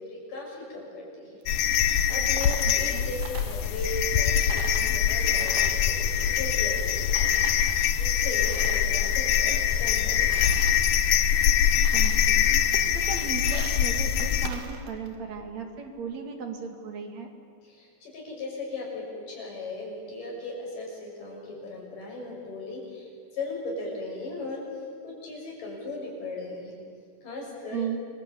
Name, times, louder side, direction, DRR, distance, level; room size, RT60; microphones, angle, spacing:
voice 1, 0.0-1.4 1.8-7.3 7.9-10.6 17.6-24.6 25.0-26.8 27.2-27.8, left 2 dB, 85° left, -2 dB, 8.1 m, -37 dB
Coin (dropping), 1.4-4.2 4.5-6.9 7.1-9.0 9.3-10.8 11.3-11.4 11.7-12.4 12.7-15.2, right 6 dB, 80° right, 3.5 m, -44 dB
sound 1, 1.5-14.5, left 9 dB, 70° left, 2.3 m, -24 dB
voice 2, 2.6-3.1 11.9-17.3 27.7-28.0, right 6 dB, 60° right, 5 dB, 3.4 m, -36 dB
28.5 x 22.5 x 8.5 m, 2.1 s
omnidirectional pair, 3.7 m